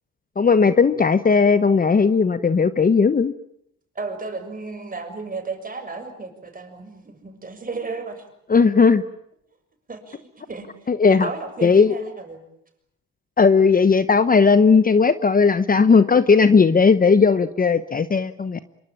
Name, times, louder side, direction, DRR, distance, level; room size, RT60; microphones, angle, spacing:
voice 1, 0.4-3.3 8.5-9.0 10.9-11.3 11.6-11.9 13.4-18.6, left 5 dB, 30° left, 12 dB, 1.0 m, -16 dB
voice 2, 3.9-8.3 9.9-12.4, right 3 dB, 30° right, 7 dB, 6.7 m, -34 dB
26.5 x 23.5 x 8.8 m, 0.76 s
cardioid pair, 90°, 30 cm